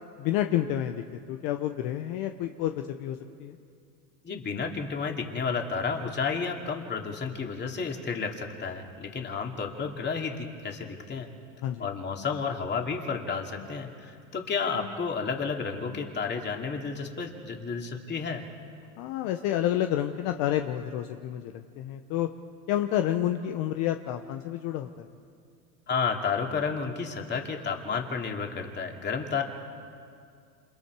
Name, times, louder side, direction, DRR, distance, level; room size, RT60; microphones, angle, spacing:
voice 1, 0.2-3.6 11.6-11.9 19.0-22.3 22.7-25.1, left 12 dB, 55° left, 6 dB, 1.2 m, -29 dB
voice 2, 4.2-11.3 11.8-18.4 25.9-29.4, left 5 dB, 25° left, 2 dB, 2.7 m, -31 dB
29.0 x 27.0 x 4.8 m, 2.3 s
supercardioid pair, 120°, 43 cm